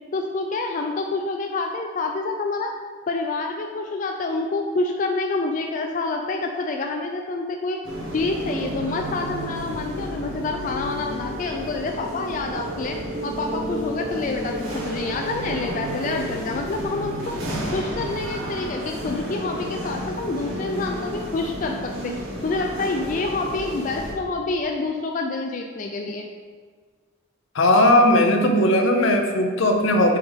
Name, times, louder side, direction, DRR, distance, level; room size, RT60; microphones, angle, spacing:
voice 1, 0.1-2.7 3.1-7.8 8.1-13.0 13.2-17.3 17.7-22.1 22.4-26.3, left 3 dB, 40° left, 3 dB, 0.3 m, -27 dB
sound 1, 7.8-24.1, equal, 85° right, 1.3 m, -31 dB
voice 2, 27.5-30.2, left 1 dB, 75° left, 4 dB, 0.7 m, -18 dB
7.6 x 3.5 x 3.5 m, 1.5 s
head